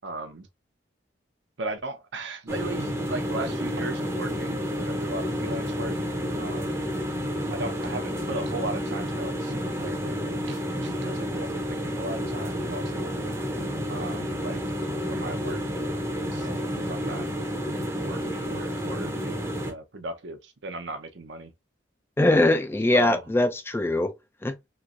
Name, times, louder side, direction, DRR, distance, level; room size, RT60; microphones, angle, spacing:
voice 1, 0.0-0.5 1.6-6.0 6.3-6.8 7.5-13.1 13.9-14.6 15.1-15.6 16.2-17.3 17.9-21.5 22.9-23.2, right 2 dB, 70° right, 0.7 m, -36 dB
sound 1, 2.5-19.7, equal, 15° right, 0.7 m, -30 dB
voice 2, 22.2-24.1 24.4-24.5, left 2 dB, 10° left, 0.3 m, -22 dB
3.1 x 3.1 x 2.4 m
head